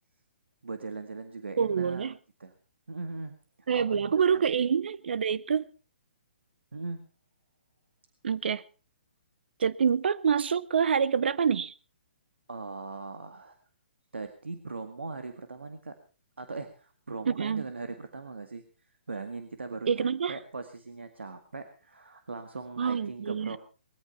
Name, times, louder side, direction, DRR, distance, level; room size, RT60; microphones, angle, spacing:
voice 1, 0.6-2.1 2.4-2.5 2.9-3.3 3.7-4.5 6.7-7.0 12.5-13.6 14.1-16.0 16.4-18.6 19.1-23.6, right 3 dB, 90° right, 1.9 m, -39 dB
voice 2, 1.6-2.1 3.7-5.6 8.2-8.6 9.6-11.7 17.2-17.6 19.9-20.4 22.8-23.6, right 7 dB, 70° right, 0.7 m, -26 dB
20.5 x 14.5 x 4.3 m
hypercardioid pair, 140°, 6 cm